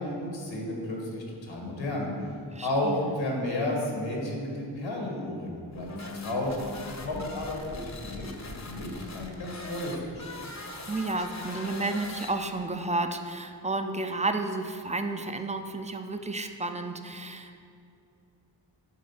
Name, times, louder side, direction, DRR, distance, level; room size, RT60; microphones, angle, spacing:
voice 1, 0.0-2.1 2.6-6.5 7.0-10.3, left 1 dB, 80° left, -1 dB, 1.6 m, -32 dB
voice 2, 2.5-3.1 10.9-17.6, right 2 dB, 15° right, 7 dB, 0.5 m, -32 dB
sound 1, 5.7-12.7, left 2 dB, 40° left, 0.9 m, -41 dB
7.5 x 3.8 x 5.7 m, 2.6 s
cardioid pair, 55°, 44 cm